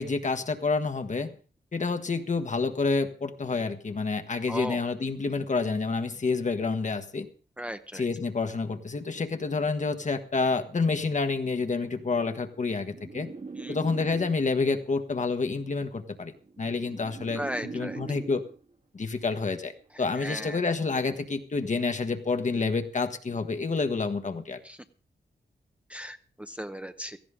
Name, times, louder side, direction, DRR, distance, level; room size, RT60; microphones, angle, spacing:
voice 1, 0.0-1.3 1.7-7.3 7.9-13.3 13.7-16.3 16.6-18.4 18.9-19.7 20.0-24.6, left 4 dB, 45° left, 7 dB, 1.4 m, -28 dB
voice 2, 4.5-4.8 7.6-8.0 13.6-13.8 17.4-18.0 20.2-20.6 24.6-24.8 25.9-27.2, equal, 5° right, 7 dB, 0.8 m, -36 dB
sound 1, 12.0-14.7 15.7-18.7 19.7-20.1, right 4 dB, 45° right, 1.7 m, -42 dB
17.0 x 14.5 x 3.7 m, 0.38 s
wide cardioid pair, 110°, 18 cm